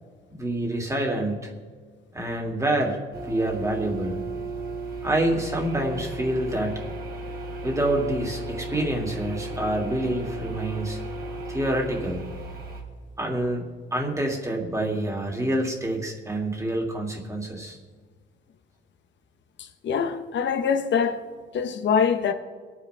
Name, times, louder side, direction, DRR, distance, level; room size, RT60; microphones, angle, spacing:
voice 1, 0.4-1.5 2.1-4.2 5.0-6.9 7.6-11.0 11.5-12.2 13.2-17.8, right 1 dB, 15° right, 3.1 m, -27 dB
sound 1, 3.1-12.8, right 2 dB, 50° right, 3.4 m, -35 dB
voice 2, 19.6-21.2 21.5-22.3, left 6 dB, 65° left, 1.3 m, -24 dB
23.5 x 9.8 x 3.6 m
cardioid pair, 90°, 20 cm